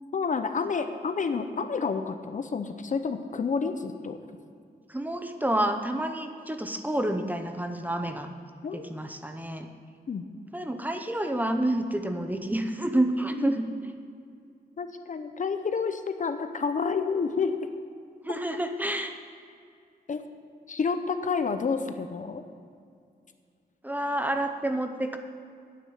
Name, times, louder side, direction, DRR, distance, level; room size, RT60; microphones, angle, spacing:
voice 1, 0.1-4.2 8.6-8.9 10.1-10.2 13.3-13.5 14.8-17.6 20.1-20.2 20.7-22.4, left 5 dB, 50° left, 8 dB, 0.7 m, -29 dB
voice 2, 4.9-8.4 8.7-9.7 10.5-14.0 18.2-19.1 23.8-25.2, right 1 dB, 10° right, 6 dB, 0.7 m, -29 dB
9.4 x 7.5 x 8.2 m, 2.3 s
wide cardioid pair, 130°, 17 cm